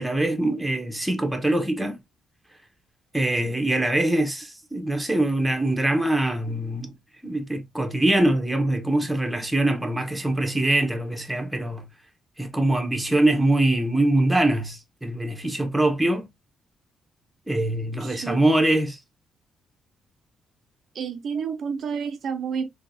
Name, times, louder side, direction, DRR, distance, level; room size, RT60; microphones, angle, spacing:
voice 1, 0.0-2.0 3.1-6.9 7.2-11.8 12.4-16.3 17.5-19.0, right 1 dB, 5° right, 1.0 m, -23 dB
voice 2, 18.0-18.5 20.9-22.7, right 6 dB, 60° right, 0.5 m, -30 dB
3.7 x 2.8 x 2.6 m
cardioid pair, 90°, 0 cm